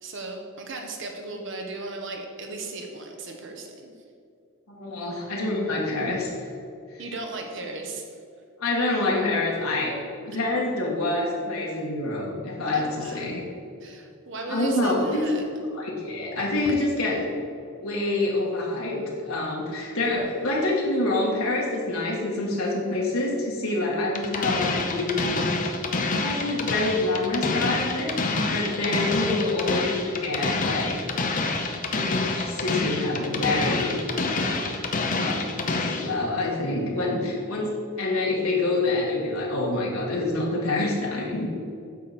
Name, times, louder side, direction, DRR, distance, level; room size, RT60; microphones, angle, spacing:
voice 1, 0.0-3.9 7.0-8.0 12.7-13.4 13.8-15.4, right 2 dB, 60° right, 2 dB, 1.2 m, -36 dB
voice 2, 4.7-6.3 6.9-7.0 8.6-9.9 10.2-13.4 14.5-15.2 15.6-17.3 17.8-25.7 26.2-28.1 28.5-31.0 32.1-33.9 34.3-34.6 35.2-41.5, left 2 dB, 85° left, -3 dB, 1.8 m, -27 dB
sound 1, 24.1-36.1, left 3 dB, 40° left, 0.7 m, -27 dB
9.2 x 6.7 x 4.3 m, 2.5 s
head